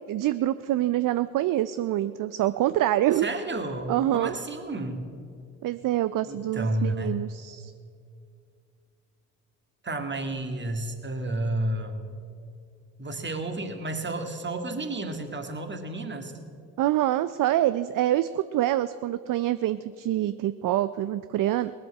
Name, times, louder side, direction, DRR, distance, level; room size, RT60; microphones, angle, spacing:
voice 1, 0.1-3.3 3.9-4.3 5.6-7.7 16.8-21.7, right 13 dB, 50° right, 14 dB, 0.5 m, -26 dB
voice 2, 3.2-5.0 6.3-7.2 9.8-12.1 13.0-16.3, right 1 dB, 25° right, 6 dB, 2.0 m, -31 dB
19.0 x 7.7 x 7.8 m, 2.4 s
hypercardioid pair, 55°, 41 cm